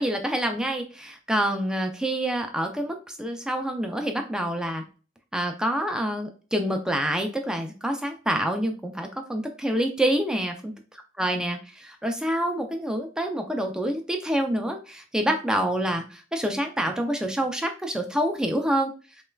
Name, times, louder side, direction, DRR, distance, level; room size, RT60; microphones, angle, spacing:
voice 1, 0.0-4.8 5.3-10.7 11.2-18.9, right 1 dB, 5° right, 4 dB, 0.4 m, -27 dB
5.2 x 2.3 x 2.3 m, 0.36 s
head